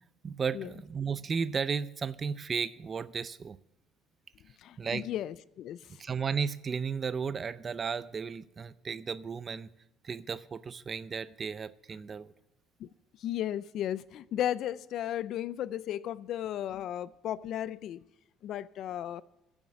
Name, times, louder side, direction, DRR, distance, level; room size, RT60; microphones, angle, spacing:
voice 1, 0.2-3.6 4.8-5.1 6.0-9.7 10.0-12.3, right 6 dB, 35° right, 0.5 m, -34 dB
voice 2, 4.6-6.0 12.8-12.9 13.2-18.1 18.4-19.2, left 11 dB, 60° left, 0.5 m, -35 dB
14.5 x 7.3 x 6.8 m
cardioid pair, 100°, 0 cm